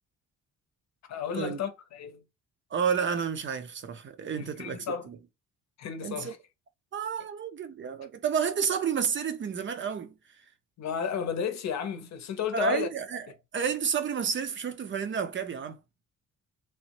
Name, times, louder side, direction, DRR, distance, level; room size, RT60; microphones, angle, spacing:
voice 1, 1.1-2.2 4.4-5.1 5.8-6.4 10.8-12.9, left 7 dB, 65° left, 0.7 m, -33 dB
voice 2, 2.7-5.2 6.0-6.3 6.9-10.1 12.5-13.3 13.5-15.8, right 7 dB, 40° right, 0.5 m, -30 dB
2.9 x 2.0 x 2.9 m
cardioid pair, 90°, 30 cm